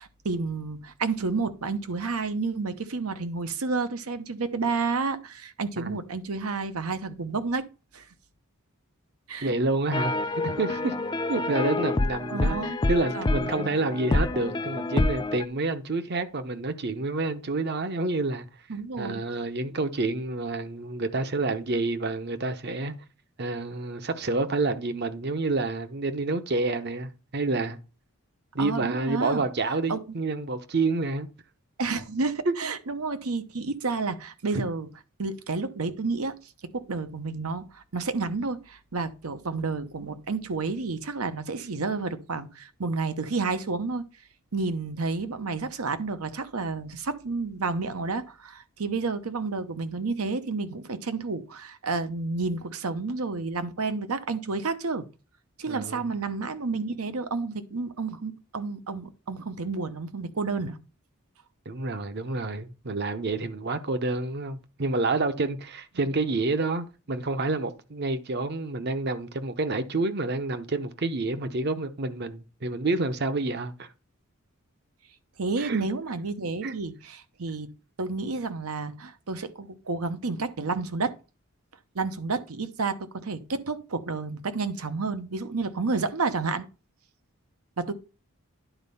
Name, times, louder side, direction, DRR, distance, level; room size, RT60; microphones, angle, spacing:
voice 1, 0.0-7.7 7.9-8.0 9.3-9.5 12.3-12.8 13.1-13.7 18.7-19.2 28.6-29.4 29.9-30.0 31.8-34.9 35.2-36.4 36.7-44.0 44.5-55.1 55.6-60.8 75.4-77.7 78.0-81.1 81.9-86.7 87.8-87.9, right 4 dB, 85° right, 0.9 m, -30 dB
voice 2, 9.4-10.1 10.4-10.9 11.3-18.5 19.0-22.9 23.4-27.8 28.5-31.3 32.5-32.7 34.5-34.6 55.7-56.1 61.7-73.9 75.6-75.9 76.6-76.7, right 3 dB, 50° right, 0.8 m, -28 dB
sound 1, 9.9-15.4, left 2 dB, 20° left, 0.4 m, -27 dB
10.0 x 4.3 x 5.5 m
head